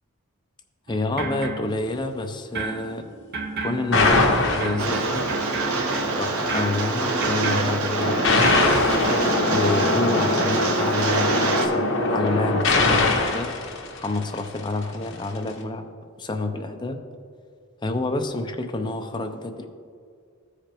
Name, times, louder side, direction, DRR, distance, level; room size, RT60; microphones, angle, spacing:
voice 1, 0.9-3.0 3.6-5.2 6.1-8.6 9.5-13.5 14.0-15.9 16.2-17.0 17.8-19.7, left 2 dB, 20° left, 4 dB, 0.5 m, -28 dB
sound 1, 0.9-2.2 2.5-8.7, right 3 dB, 50° right, 0.9 m, -33 dB
sound 2, 3.9-5.3 8.0-14.6, left 2 dB, 60° left, 1.1 m, -22 dB
Rain, 4.8-11.7, right 3 dB, 85° right, 0.8 m, -25 dB
14.5 x 4.9 x 3.0 m, 2.1 s
head